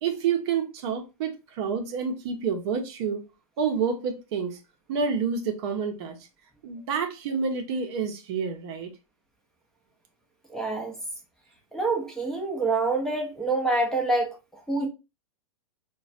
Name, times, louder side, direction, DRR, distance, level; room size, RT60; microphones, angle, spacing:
voice 1, 0.0-3.2 3.6-4.6 4.9-6.2 6.6-8.9, right 6 dB, 45° right, 0.7 m, -28 dB
voice 2, 10.5-10.9 11.7-14.3 14.7-14.9, right 2 dB, 5° left, 0.6 m, -26 dB
3.9 x 2.2 x 2.4 m
hypercardioid pair, 110°, 18 cm